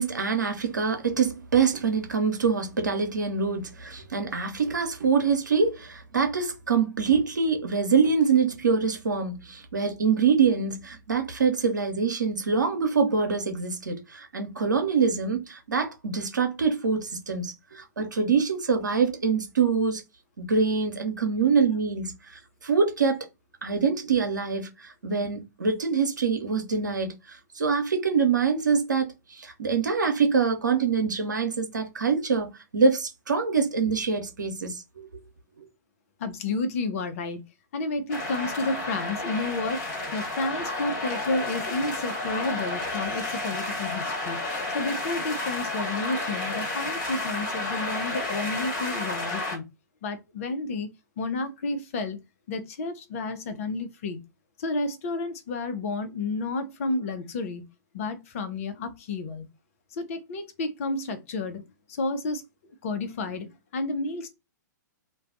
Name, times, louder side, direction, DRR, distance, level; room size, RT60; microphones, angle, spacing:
voice 1, 0.0-20.0 20.4-22.1 22.6-23.3 23.6-35.1, right 5 dB, 75° right, 0.8 m, -25 dB
voice 2, 36.2-37.4 37.7-39.8 40.1-44.4 44.7-49.6 50.0-50.9 51.2-54.2 54.6-57.7 57.9-59.5 59.9-62.4 62.8-64.3, left 3 dB, 45° left, 0.7 m, -31 dB
sound 1, 38.1-49.6, left 2 dB, 30° left, 1.3 m, -31 dB
2.4 x 2.3 x 3.5 m
figure-of-eight pair, 115°, 10 cm